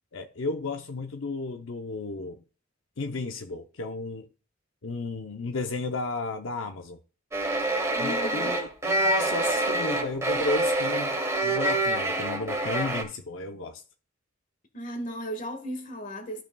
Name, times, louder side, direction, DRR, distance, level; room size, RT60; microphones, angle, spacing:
voice 1, 0.1-2.4 3.0-4.3 4.8-7.0 8.0-13.8, left 3 dB, 80° left, 0.7 m, -33 dB
sound 1, 7.3-13.0, right 2 dB, 15° right, 1.2 m, -26 dB
voice 2, 7.9-8.5 14.7-16.4, right 1 dB, 40° left, 1.4 m, -35 dB
13.0 x 5.7 x 2.2 m
head